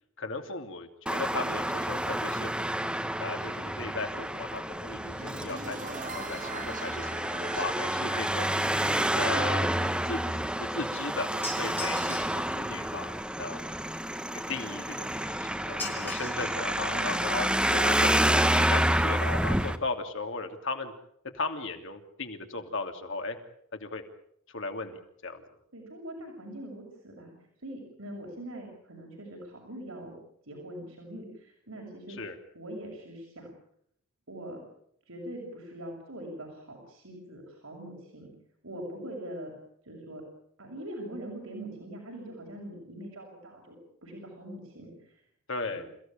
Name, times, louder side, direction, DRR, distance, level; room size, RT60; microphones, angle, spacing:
voice 1, 0.2-2.5 3.2-8.5 9.1-9.7 10.0-10.2 10.6-11.3 11.6-13.6 14.5-20.9 21.3-23.4 23.7-24.0 24.5-25.4 32.2-32.4 45.5-45.8, left 3 dB, 65° left, 5 dB, 2.9 m, -36 dB
Traffic noise roadway noise, 1.1-19.8, right 1 dB, 5° right, 1.3 m, -29 dB
sound 1, 4.9-11.0, right 4 dB, 40° right, 2.1 m, -43 dB
sound 2, 11.4-12.4 15.8-16.5 16.9-17.0 17.9-18.0 18.3-18.4 18.6-18.8 19.1-19.2, left 1 dB, 10° left, 7.3 m, -39 dB
voice 2, 25.7-27.3 27.6-30.1 30.5-32.2 32.5-33.5 34.3-34.6 35.1-38.3 38.6-39.5 39.9-40.2 40.6-43.8 44.0-45.1 45.7-45.8, right 1 dB, 80° right, 0 dB, 6.8 m, -42 dB
29.0 x 16.0 x 8.9 m, 0.70 s
head